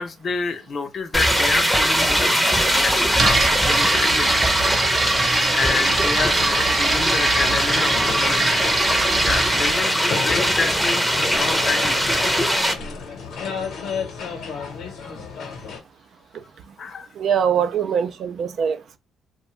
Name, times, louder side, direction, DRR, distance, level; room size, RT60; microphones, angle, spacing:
voice 1, 0.0-2.3 2.7-4.5 5.1-8.6 9.2-12.0 12.9-13.0 16.8-17.1, left 5 dB, 50° left, 0.5 m, -29 dB
sound 1, 1.1-12.7, equal, 5° right, 0.6 m, -21 dB
sound 2, 3.2-9.8, right 3 dB, 45° right, 0.7 m, -24 dB
sound 3, 6.5-15.8, left 5 dB, 75° left, 0.9 m, -32 dB
voice 2, 17.2-19.0, right 7 dB, 65° right, 0.4 m, -22 dB
2.5 x 2.2 x 3.0 m
cardioid pair, 90°, 0 cm